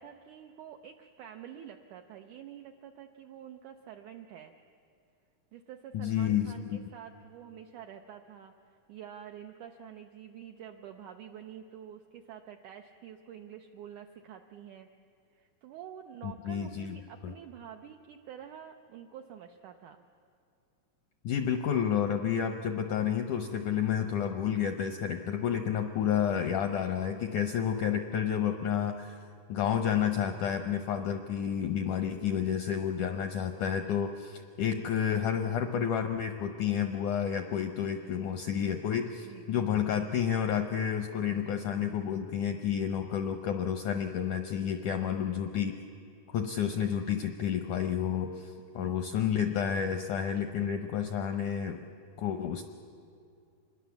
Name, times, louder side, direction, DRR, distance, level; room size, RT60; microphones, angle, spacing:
voice 1, 0.0-4.5 5.5-14.9 15.3-20.0 29.5-29.9 32.0-32.4 37.8-38.2 39.2-39.5 44.6-45.5 48.6-49.0, right 9 dB, 90° right, 5 dB, 1.7 m, -48 dB
voice 2, 5.9-6.8 16.2-17.0 17.2-17.3 21.2-29.2 29.5-45.7 46.3-51.8 52.2-52.6, left 8 dB, 80° left, 7 dB, 1.7 m, -30 dB
26.0 x 21.0 x 7.1 m, 2.5 s
omnidirectional pair, 4.5 m